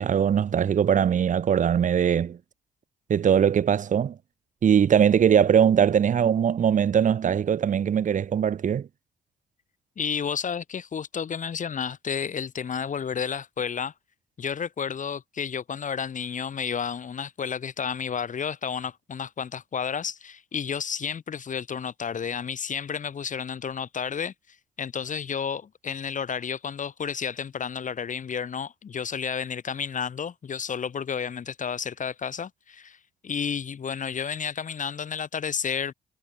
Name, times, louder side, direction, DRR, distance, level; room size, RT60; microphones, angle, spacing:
voice 1, 0.0-2.4 3.1-4.2 4.6-8.9, right 8 dB, 45° right, 1.0 m, -21 dB
voice 2, 10.0-13.9 14.4-24.3 24.8-35.9, left 7 dB, 45° left, 2.2 m, -31 dB
figure-of-eight pair, 40°, 18 cm